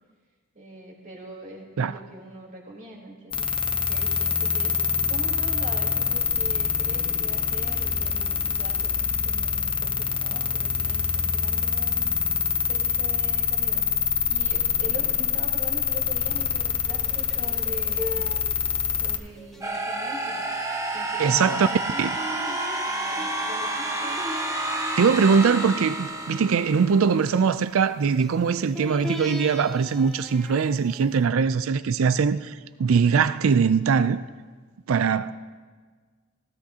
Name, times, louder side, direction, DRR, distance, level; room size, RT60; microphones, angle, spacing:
voice 1, 0.5-12.1 12.7-13.8 14.3-18.3 18.9-20.5 20.9-24.3, right 1 dB, 40° right, 3.5 m, -42 dB
sound 1, 3.3-19.2, left 6 dB, 25° left, 0.8 m, -25 dB
sound 2, 16.9-31.3, left 2 dB, ahead, 1.4 m, -41 dB
sound 3, 19.6-27.5, right 1 dB, 15° right, 1.1 m, -30 dB
voice 2, 21.2-21.7 22.0-22.1 25.0-32.5 32.8-34.2 34.9-35.3, right 6 dB, 75° right, 0.4 m, -21 dB
19.0 x 18.5 x 2.8 m
head